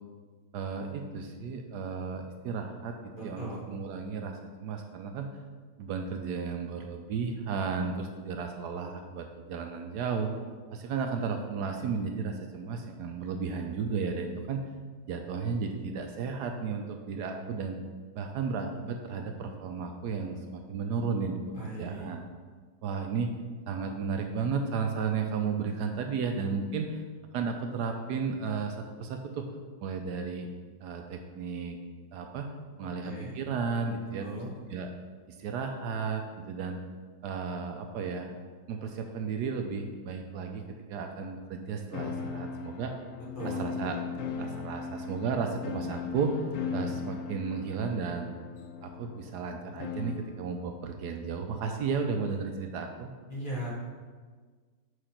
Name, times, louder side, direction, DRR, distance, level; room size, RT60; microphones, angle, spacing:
voice 1, 0.5-5.3 5.8-10.3 10.7-14.6 15.1-17.8 18.1-22.2 22.8-23.3 23.7-27.0 27.3-29.5 29.8-30.5 30.8-31.8 32.1-32.5 32.8-34.3 34.7-34.9 35.3-36.8 37.2-38.3 38.7-40.6 40.9-42.9 43.4-44.0 44.4-46.4 46.7-48.4 48.8-53.1, right 5 dB, 75° right, 4 dB, 1.1 m, -33 dB
voice 2, 3.2-3.6 21.5-22.1 32.8-33.3 34.2-34.5 43.3-43.6 53.3-53.7, right 1 dB, 30° left, -5 dB, 1.4 m, -38 dB
sound 1, 41.9-50.3, left 5 dB, 70° left, 0.7 m, -38 dB
5.0 x 4.9 x 5.7 m, 1.5 s
omnidirectional pair, 1.9 m